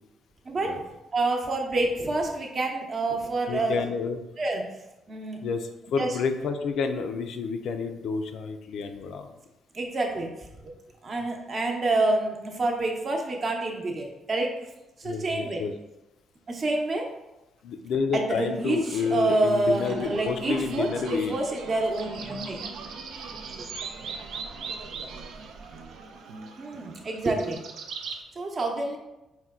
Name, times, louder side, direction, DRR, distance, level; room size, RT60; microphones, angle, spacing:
voice 1, 0.4-0.8 1.1-3.8 4.4-4.6 5.1-5.4 6.0-6.1 9.7-10.3 10.6-10.7 11.0-14.6 15.0-15.6 16.5-17.1 18.1-22.6 23.6-23.7 26.6-27.7 28.4-29.0, right 2 dB, 40° right, 2 dB, 0.7 m, -27 dB
voice 2, 3.5-4.2 5.4-9.3 15.0-15.7 17.6-21.4, left 5 dB, 75° left, 7 dB, 0.4 m, -29 dB
sound 1, 18.5-28.2, right 5 dB, 75° right, 0.4 m, -40 dB
4.3 x 2.2 x 3.6 m, 0.98 s
cardioid pair, 90°, 0 cm